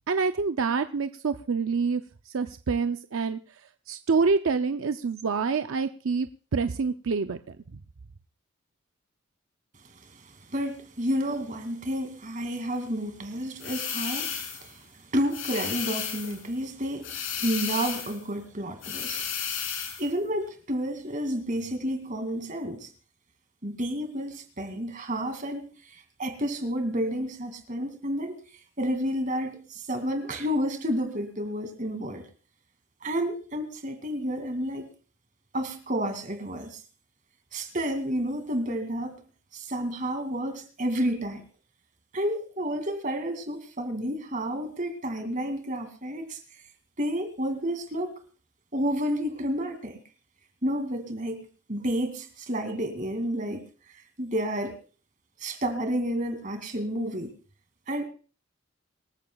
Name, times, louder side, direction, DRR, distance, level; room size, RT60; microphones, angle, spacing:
voice 1, 0.1-3.4 3.9-7.4 7.7-7.8, right 4 dB, 70° right, 0.5 m, -27 dB
voice 2, 10.0-19.3 20.0-22.9 23.6-25.7 26.2-28.4 28.8-32.2 33.0-34.9 35.5-36.8 37.5-39.1 39.5-41.4 42.1-46.4 47.0-48.2 48.7-50.0 50.6-53.6 54.2-54.7 55.4-57.3 57.9-58.0, equal, 40° right, 2.4 m, -30 dB
sound 1, 13.6-14.7 15.3-16.4 17.0-18.2 18.8-20.1, left 7 dB, 70° left, 4.0 m, -33 dB
25.5 x 14.0 x 2.3 m
head